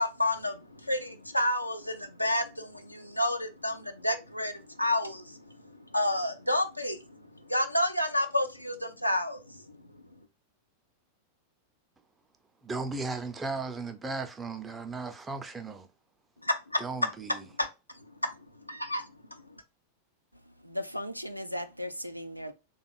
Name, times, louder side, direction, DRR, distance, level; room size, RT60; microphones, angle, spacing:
voice 1, 0.0-5.6 5.9-7.2 7.5-9.8 16.4-16.8 17.6-17.7 18.2-18.3 18.7-19.1, left 1 dB, 85° left, 0.5 m, -30 dB
voice 2, 12.6-15.9 16.8-17.5, right 3 dB, 15° right, 0.5 m, -36 dB
voice 3, 20.5-22.5, left 1 dB, 90° right, 0.3 m, -37 dB
3.6 x 2.3 x 3.5 m
figure-of-eight pair, 90°, 0 cm